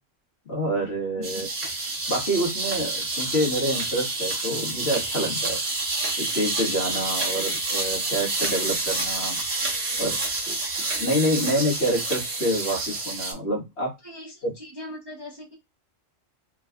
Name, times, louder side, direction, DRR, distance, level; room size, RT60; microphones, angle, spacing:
voice 1, 0.5-1.5 2.1-5.6 6.2-9.4 10.0-10.2 10.5-10.6 10.9-13.9 14.4-14.5, equal, 55° left, -2 dB, 1.8 m, -27 dB
sound 1, 1.2-13.3, right 2 dB, 55° right, 1.5 m, -28 dB
voice 2, 14.0-15.5, equal, 25° right, 0 dB, 0.7 m, -40 dB
3.5 x 3.2 x 2.3 m, 0.22 s
omnidirectional pair, 1.3 m